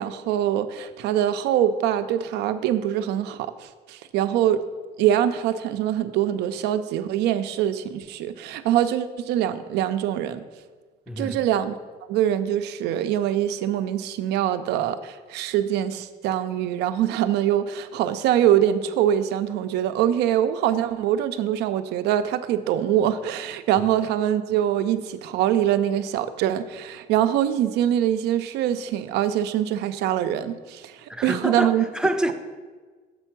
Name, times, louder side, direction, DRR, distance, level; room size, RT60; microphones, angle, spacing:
voice 1, 0.0-4.6 5.0-10.4 11.2-11.7 12.1-31.8, right 11 dB, 85° right, 0.5 m, -24 dB
voice 2, 11.1-11.4 23.8-23.9 31.1-32.3, right 1 dB, 5° right, 0.5 m, -26 dB
6.8 x 4.5 x 5.8 m
cardioid pair, 110°, 17 cm